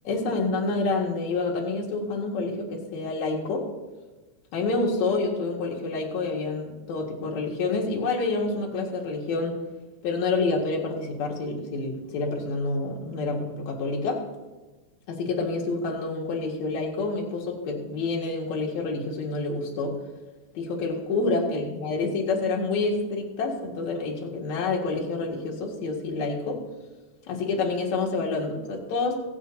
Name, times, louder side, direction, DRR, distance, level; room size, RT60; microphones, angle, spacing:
voice 1, 0.0-3.7 4.5-9.6 10.0-14.3 15.1-19.9 20.5-26.6 27.3-29.2, left 3 dB, 70° left, -2 dB, 2.9 m, -28 dB
23.0 x 7.7 x 2.7 m, 1.2 s
omnidirectional pair, 3.5 m